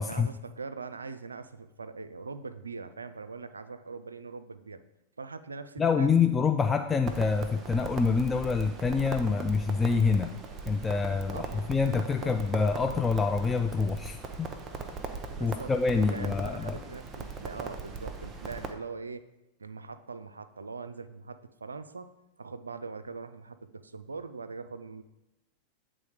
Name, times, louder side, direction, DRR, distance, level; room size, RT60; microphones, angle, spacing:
voice 1, 0.0-4.8 5.2-6.3 11.3-11.7 12.2-12.4 15.4-19.3 19.6-22.1 22.4-25.0, right 4 dB, 75° right, 12 dB, 0.3 m, -42 dB
voice 2, 5.8-10.3 10.7-14.5 15.4-16.8, left 5 dB, 15° left, 6 dB, 0.3 m, -26 dB
Crackle, 7.1-18.7, right 4 dB, 20° right, 0.7 m, -39 dB
8.3 x 3.7 x 4.9 m, 0.95 s
figure-of-eight pair, 90°, 0 cm